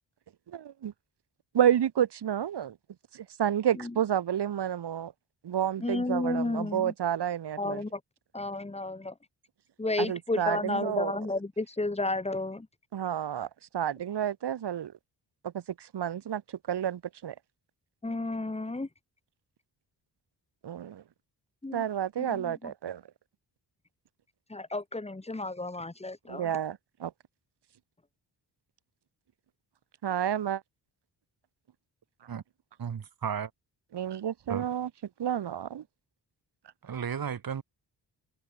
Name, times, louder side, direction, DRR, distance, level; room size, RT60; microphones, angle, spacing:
voice 1, 0.5-0.9 1.5-2.8 3.1-5.1 5.4-7.8 10.0-11.2 12.9-13.5 13.7-14.9 15.4-16.4 16.7-17.4 20.6-21.0 21.7-23.0 26.3-27.1 30.0-30.6 33.9-34.9 35.2-35.8, right 9 dB, 75° right, 3.7 m, -30 dB
voice 2, 5.8-6.9 7.6-8.0 8.3-9.1 9.8-12.7 18.0-18.9 21.6-21.8 22.2-22.7 24.5-26.5, left 2 dB, 15° left, 2.7 m, -32 dB
voice 3, 32.8-33.5 34.5-34.7 36.8-37.6, right 7 dB, 55° right, 6.9 m, -34 dB
wide cardioid pair, 130°, 41 cm